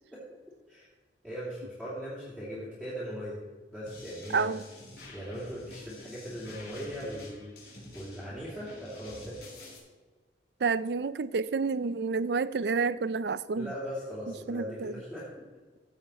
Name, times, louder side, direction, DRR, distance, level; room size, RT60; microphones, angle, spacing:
voice 1, 1.2-3.4 3.7-4.5 5.1-9.5 13.5-15.4, equal, 5° left, 2.7 m, -39 dB
sound 1, 3.9-9.8, left 1 dB, 60° left, 3.6 m, -49 dB
voice 2, 4.3-4.6 10.6-13.7 14.5-15.0, right 4 dB, 65° right, 0.5 m, -29 dB
15.0 x 8.0 x 4.3 m
head